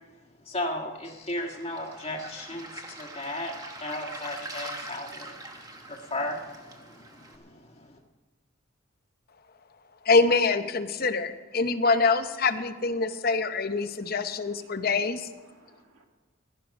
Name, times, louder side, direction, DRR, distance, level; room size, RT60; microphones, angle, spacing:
voice 1, 0.4-8.0, left 1 dB, 30° left, 0 dB, 1.5 m, -36 dB
Waves surf, 1.4-7.4, right 2 dB, 15° right, 1.2 m, -43 dB
voice 2, 10.0-15.3, left 4 dB, 45° left, 10 dB, 0.8 m, -25 dB
voice 3, 13.8-15.1 15.4-16.1, right 2 dB, 70° right, 2 dB, 2.2 m, -61 dB
16.0 x 12.0 x 5.2 m, 1.3 s
head